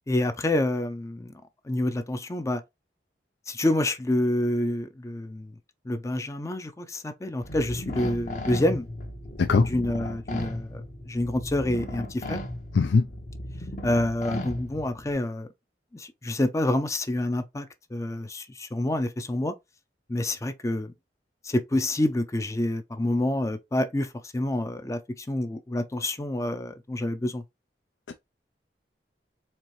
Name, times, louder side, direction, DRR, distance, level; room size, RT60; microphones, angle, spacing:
voice 1, 0.1-1.3 1.7-2.6 3.5-5.5 5.9-8.9 9.6-12.4 13.8-15.5 15.9-19.5 20.1-20.9 21.4-27.4, left 1 dB, 15° left, 0.4 m, -28 dB
sound 1, 7.4-15.1, left 1 dB, 45° left, 0.8 m, -36 dB
voice 2, 12.7-13.1 28.1-28.2, left 4 dB, 90° left, 0.4 m, -20 dB
4.4 x 2.8 x 3.0 m
head